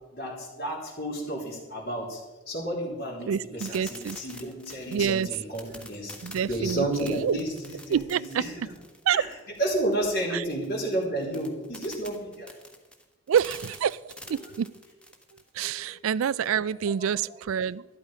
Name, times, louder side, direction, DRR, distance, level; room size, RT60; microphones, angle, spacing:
voice 1, 0.1-8.5 9.1-12.6 14.3-14.6 15.6-16.0 16.4-16.5 16.8-17.1, right 1 dB, 50° left, -4 dB, 3.4 m, -32 dB
voice 2, 3.3-4.2 4.9-5.3 6.2-7.4 7.9-8.4 9.1-9.2 10.3-10.4 13.3-14.7 15.5-17.9, right 8 dB, 85° right, 21 dB, 0.4 m, -27 dB
sound 1, 3.6-15.5, left 1 dB, 5° left, 1.2 m, -46 dB
12.5 x 12.0 x 5.0 m, 1.2 s
head